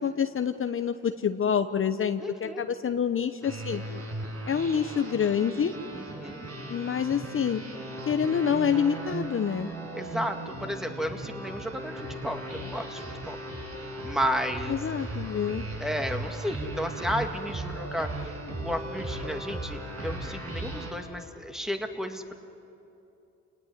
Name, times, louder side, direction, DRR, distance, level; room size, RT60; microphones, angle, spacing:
voice 1, 0.0-3.8 4.5-5.7 6.7-7.6 8.1-9.7 14.7-15.7, left 7 dB, 45° left, 8 dB, 0.9 m, -27 dB
voice 2, 2.2-2.7 5.9-6.5 9.9-13.4 14.0-14.8 15.8-18.1 18.6-22.4, equal, ahead, 4 dB, 2.1 m, -33 dB
sound 1, 3.4-20.9, right 1 dB, 55° right, 6.2 m, -37 dB
28.5 x 19.0 x 9.8 m, 2.8 s
cardioid pair, 75°, 30 cm